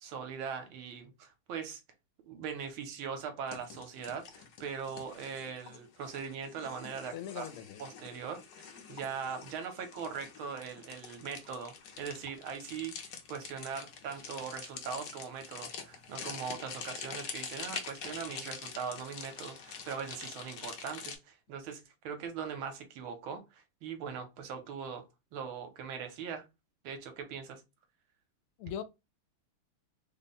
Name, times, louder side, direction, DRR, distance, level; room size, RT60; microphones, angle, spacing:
voice 1, 0.0-1.8 2.3-7.5 7.8-12.9 13.3-25.0 25.3-26.5 26.8-27.6, right 6 dB, 75° right, 1.6 m, -41 dB
sound 1, 3.5-21.2, left 6 dB, 65° left, 1.0 m, -46 dB
voice 2, 7.1-7.8 28.6-28.8, left 10 dB, 80° left, 1.4 m, -40 dB
3.5 x 2.1 x 4.1 m
omnidirectional pair, 2.4 m